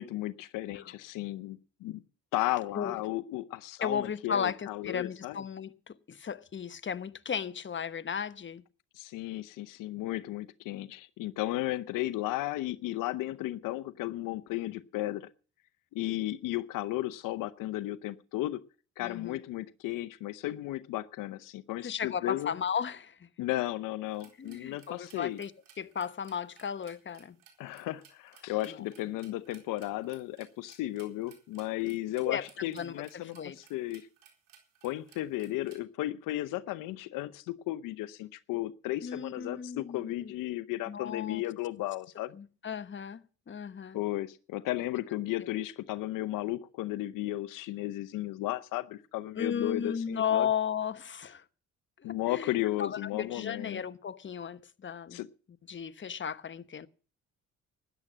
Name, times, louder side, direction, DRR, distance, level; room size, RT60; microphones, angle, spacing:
voice 1, 0.0-2.0 2.3-5.4 9.0-15.3 15.9-18.6 19.0-22.5 23.4-25.4 27.6-34.1 34.8-42.3 43.9-50.5 52.0-53.8 55.1-55.3, left 16 dB, 90° left, 0.7 m, -34 dB
voice 2, 3.8-8.6 19.0-19.4 21.8-23.3 24.4-25.5 25.8-27.4 28.7-28.8 32.2-33.6 39.0-40.3 40.9-41.4 42.3-44.0 49.4-51.4 52.0-52.5 52.8-55.2 55.7-56.9, left 7 dB, 35° left, 1.1 m, -35 dB
sound 1, 24.1-35.8, right 8 dB, 85° right, 4.3 m, -60 dB
13.0 x 10.5 x 7.3 m
cardioid pair, 70°, 32 cm